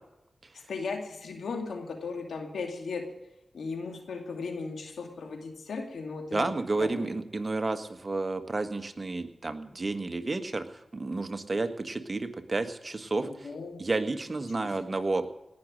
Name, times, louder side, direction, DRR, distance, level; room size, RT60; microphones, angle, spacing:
voice 1, 0.5-3.1 3.5-7.2 13.2-13.8 14.6-14.9, left 4 dB, 85° left, 3 dB, 2.5 m, -37 dB
voice 2, 6.3-13.5 13.8-15.2, right 3 dB, 45° right, 8 dB, 1.6 m, -31 dB
18.0 x 6.6 x 9.9 m, 0.93 s
cardioid pair, 40°, 0 cm